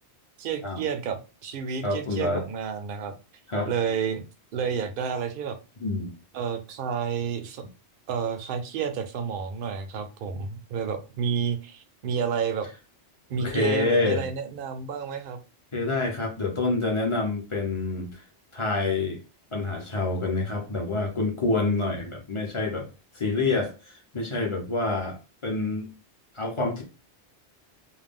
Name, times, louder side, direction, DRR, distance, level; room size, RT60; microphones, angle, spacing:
voice 1, 0.4-3.2 3.7-4.2 4.5-5.6 6.3-7.6 8.1-12.7 13.3-15.4, right 6 dB, 60° right, 6 dB, 0.6 m, -30 dB
voice 2, 1.8-2.4 3.5-3.7 5.8-6.1 13.4-14.2 15.7-18.2 18.5-19.2 19.5-22.9 23.1-25.2 25.4-25.9 26.3-26.8, left 3 dB, 35° left, 1 dB, 0.6 m, -27 dB
2.5 x 2.1 x 3.5 m, 0.32 s
omnidirectional pair, 1.2 m